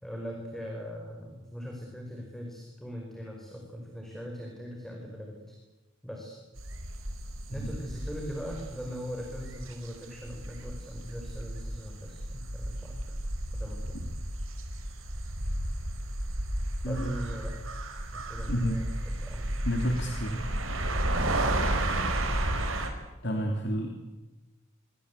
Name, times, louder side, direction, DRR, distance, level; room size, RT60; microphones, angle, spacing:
voice 1, 0.0-5.4 6.0-6.4 7.5-13.2 13.5-13.9 16.8-17.5 18.3-19.6 23.2-23.5, equal, ahead, 0 dB, 4.9 m, -40 dB
sound 1, 6.6-22.9, right 1 dB, 80° right, 4.9 m, -33 dB
voice 2, 18.5-18.8 19.6-20.5 23.2-23.9, equal, 55° left, 3 dB, 3.2 m, -30 dB
26.5 x 25.0 x 8.4 m, 1.1 s
head